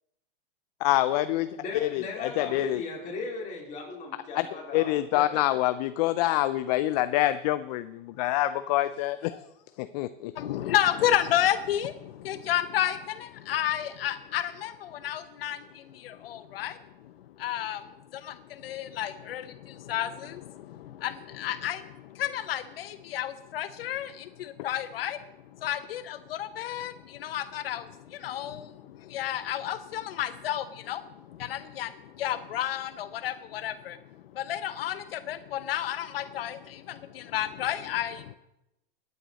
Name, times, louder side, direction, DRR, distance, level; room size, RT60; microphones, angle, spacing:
voice 1, 0.8-1.5 1.8-2.8 4.3-4.5 4.7-9.4 9.8-10.3, left 15 dB, 45° left, 13 dB, 0.5 m, -26 dB
voice 2, 1.6-5.4, left 3 dB, 25° left, -2 dB, 3.8 m, -38 dB
voice 3, 10.4-16.8 17.4-17.8 18.1-25.2 25.6-31.0 31.3-34.0 34.3-38.4, left 11 dB, 80° left, 11 dB, 0.7 m, -31 dB
16.5 x 9.4 x 4.1 m, 0.92 s
hypercardioid pair, 135°, 29 cm